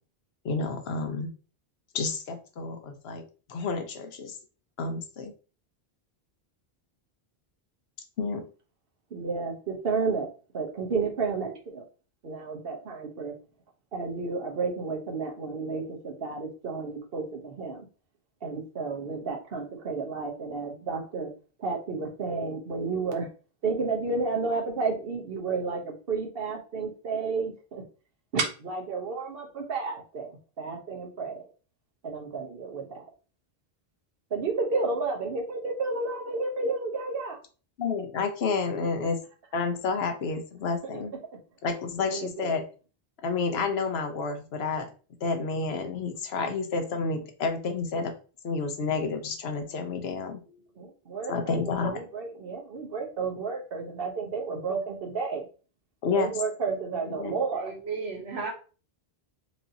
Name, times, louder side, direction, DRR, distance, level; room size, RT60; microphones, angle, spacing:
voice 1, 0.4-1.3 1.9-3.2 3.5-4.3 4.8-5.3 8.2-8.4 37.8-39.2 39.5-41.1 41.6-42.6 43.2-44.9 45.2-48.1 48.4-50.4 51.3-52.0 56.0-56.3 57.1-57.3, left 4 dB, 75° left, 6 dB, 1.0 m, -30 dB
voice 2, 9.1-10.3 10.5-11.8 12.2-13.3 13.9-17.9 18.4-21.3 21.6-23.3 23.6-27.8 28.3-31.5 32.0-33.0 34.3-37.4 38.8-38.9 40.9-41.0 41.3-41.4 42.1-42.5 50.5-55.4 56.1-57.7, right 4 dB, 65° right, 2 dB, 1.1 m, -31 dB
voice 3, 57.6-58.5, right 4 dB, 90° right, 2 dB, 1.3 m, -34 dB
4.8 x 2.6 x 2.7 m, 0.36 s
omnidirectional pair, 1.1 m